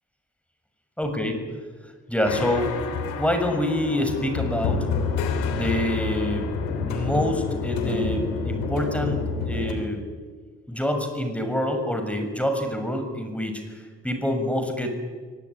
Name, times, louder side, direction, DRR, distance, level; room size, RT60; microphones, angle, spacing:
voice 1, 1.0-1.4 2.1-2.8 3.2-4.9 5.5-6.5 6.8-10.0 10.7-15.0, left 1 dB, 5° left, 6 dB, 6.8 m, -26 dB
sound 1, 2.2-9.7, left 4 dB, 85° left, 3.4 m, -28 dB
23.0 x 19.0 x 10.0 m, 1.5 s
hypercardioid pair, 40°, 33 cm